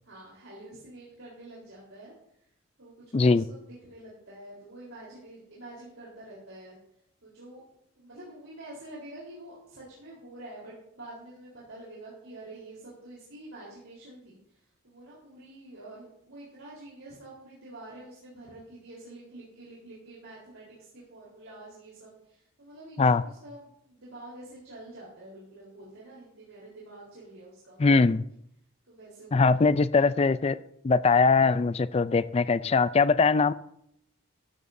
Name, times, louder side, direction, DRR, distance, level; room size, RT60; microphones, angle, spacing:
voice 1, 0.0-2.1 2.8-6.8 7.2-7.6 8.0-14.6 14.8-27.8 28.8-30.1, right 1 dB, 75° right, -6 dB, 3.9 m, -47 dB
voice 2, 3.1-3.4 23.0-23.2 27.8-28.2 29.3-30.6 30.8-33.5, left 4 dB, 30° left, 15 dB, 0.4 m, -21 dB
14.0 x 13.5 x 2.7 m, 0.73 s
head